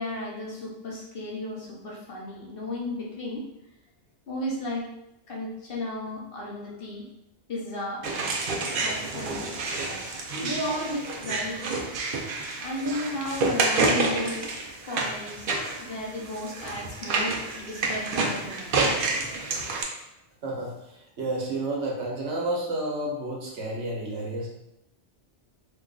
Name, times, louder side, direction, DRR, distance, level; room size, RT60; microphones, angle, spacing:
voice 1, 0.0-3.4 4.3-4.8 5.3-7.0 7.5-8.0 8.8-9.7 10.4-11.8 12.6-18.8, left 1 dB, 55° left, -4 dB, 0.9 m, -34 dB
sound 1, 8.0-19.8, right 3 dB, 60° right, 0.6 m, -29 dB
voice 2, 20.4-20.7 21.2-24.5, right 1 dB, 75° right, -2 dB, 1.1 m, -30 dB
2.9 x 2.3 x 3.8 m, 0.86 s
omnidirectional pair, 1.2 m